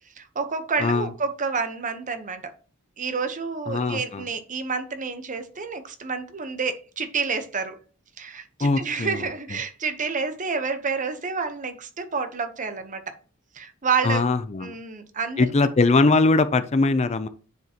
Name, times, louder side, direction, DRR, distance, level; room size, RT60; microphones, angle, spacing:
voice 1, 0.2-2.5 3.0-7.8 8.2-13.1 13.5-14.2 14.6-15.5, right 5 dB, 40° right, 0.9 m, -29 dB
voice 2, 0.8-1.1 3.7-4.3 8.6-9.3 14.0-14.7 15.4-17.3, left 3 dB, 30° left, 0.5 m, -21 dB
9.3 x 5.0 x 2.9 m
head